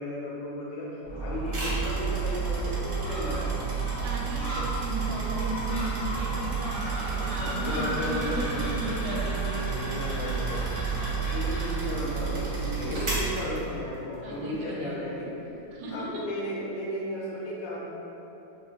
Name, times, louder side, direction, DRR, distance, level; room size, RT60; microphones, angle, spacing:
voice 1, 0.0-3.8 7.3-9.2 9.6-15.5 15.9-17.8, left 1 dB, 90° left, -5 dB, 1.4 m, -35 dB
Gull seagull, 1.0-13.5, right 5 dB, 35° left, 0.8 m, -31 dB
sound 1, 1.5-14.1, right 1 dB, 55° right, 0.9 m, -40 dB
voice 2, 4.0-9.7 14.2-15.0 15.7-16.2, right 1 dB, 75° right, -4 dB, 1.1 m, -35 dB
3.0 x 3.0 x 2.4 m, 2.9 s
omnidirectional pair, 1.9 m